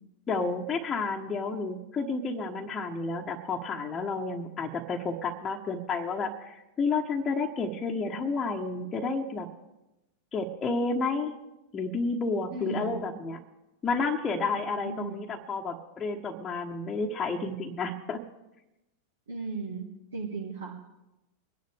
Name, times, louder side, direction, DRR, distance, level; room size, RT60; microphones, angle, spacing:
voice 1, 0.3-9.5 10.3-11.3 11.7-13.4 13.8-18.2, left 3 dB, 20° left, -1 dB, 1.2 m, -31 dB
voice 2, 12.5-13.0 14.8-15.2 19.3-20.9, right 4 dB, 70° right, -4 dB, 1.7 m, -36 dB
24.0 x 10.5 x 3.5 m, 0.95 s
figure-of-eight pair, 90°, 0 cm